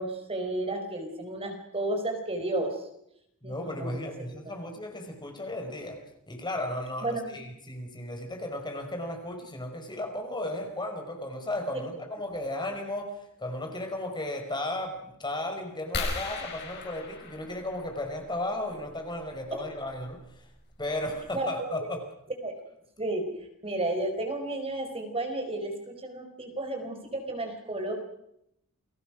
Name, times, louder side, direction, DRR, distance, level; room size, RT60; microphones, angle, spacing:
voice 1, 0.0-2.7 3.4-4.0 7.0-7.4 21.3-21.9 22.4-22.5 23.0-23.2 23.6-28.0, right 2 dB, 25° right, 4 dB, 4.7 m, -32 dB
voice 2, 3.4-6.0 6.3-20.5 20.8-22.0, left 1 dB, 20° left, 4 dB, 4.6 m, -35 dB
sound 1, 15.9-18.3 19.9-20.1 20.7-20.8 21.1-21.3, left 3 dB, 50° left, 7.7 m, -36 dB
29.5 x 21.5 x 6.2 m, 0.77 s
head